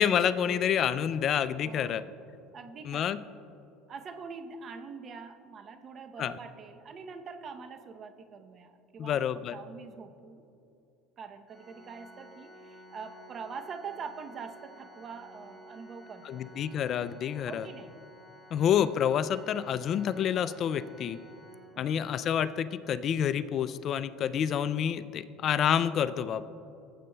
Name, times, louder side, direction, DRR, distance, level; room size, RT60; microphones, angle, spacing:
voice 1, 0.0-2.0 2.9-3.2 6.2-6.3 9.0-9.6 16.3-17.7 18.5-21.2 21.8-26.4, left 9 dB, 50° left, 15 dB, 0.3 m, -28 dB
voice 2, 1.6-2.1 2.5-3.0 3.9-10.4 11.2-16.4 17.5-17.9 21.7-21.9, right 5 dB, 40° right, 7 dB, 0.7 m, -44 dB
Organ, 11.5-22.3, left 1 dB, 5° right, 2.2 m, -53 dB
15.0 x 7.6 x 2.2 m, 2.8 s
supercardioid pair, 100°, 0 cm